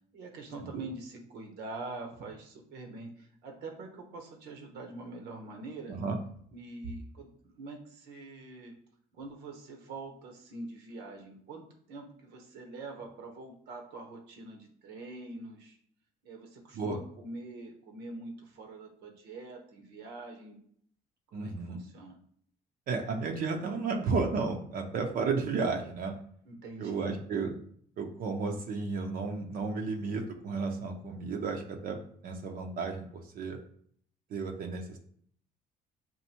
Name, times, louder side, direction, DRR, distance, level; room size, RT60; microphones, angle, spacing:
voice 1, 0.1-5.9 6.5-8.7 9.1-11.6 11.9-15.8 16.2-20.6 21.3-22.2 26.4-27.1, right 2 dB, 80° right, 3 dB, 0.9 m, -44 dB
voice 2, 21.3-21.8 22.9-26.1 26.8-27.5 28.0-33.6 34.3-35.0, right 4 dB, 60° right, 3 dB, 0.6 m, -33 dB
5.4 x 2.6 x 2.8 m, 0.62 s
cardioid pair, 110°, 17 cm